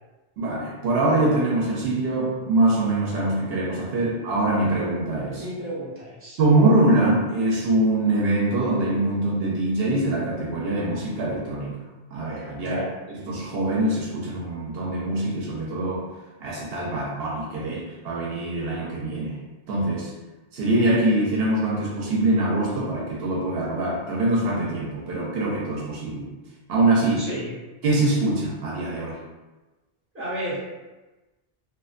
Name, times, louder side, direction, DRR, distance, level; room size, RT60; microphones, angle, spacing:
voice 1, 0.4-5.4 6.4-11.8 12.1-12.8 13.1-16.1 16.4-19.4 19.7-20.1 20.5-26.3 26.7-27.3 27.8-29.2, right 2 dB, 75° right, -4 dB, 0.8 m, -23 dB
voice 2, 5.3-6.4 12.6-12.9 27.2-27.5 30.1-30.6, right 1 dB, 15° right, -10 dB, 0.7 m, -32 dB
2.4 x 2.1 x 2.4 m, 1.2 s
omnidirectional pair, 1.0 m